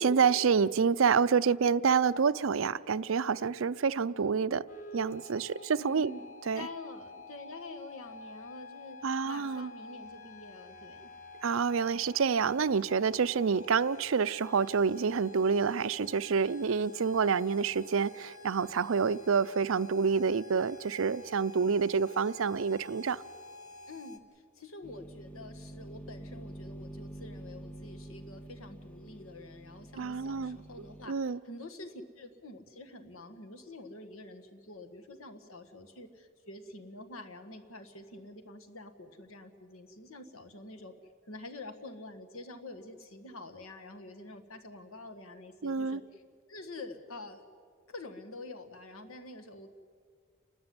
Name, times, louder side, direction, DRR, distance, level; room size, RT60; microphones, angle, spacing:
voice 1, 0.0-4.6 4.9-6.1 6.5-6.7 9.0-9.7 11.4-23.2 30.0-30.6 31.1-31.4 45.6-46.0, right 6 dB, 70° right, 0.5 m, -28 dB
sound 1, 4.7-24.2, left 2 dB, 40° left, 1.5 m, -50 dB
voice 2, 5.8-6.2 6.5-11.1 23.9-46.2 46.5-47.4 47.9-49.7, left 2 dB, 85° left, 1.7 m, -47 dB
sound 2, 24.8-31.1, right 1 dB, 5° left, 0.6 m, -47 dB
29.5 x 13.0 x 9.6 m
head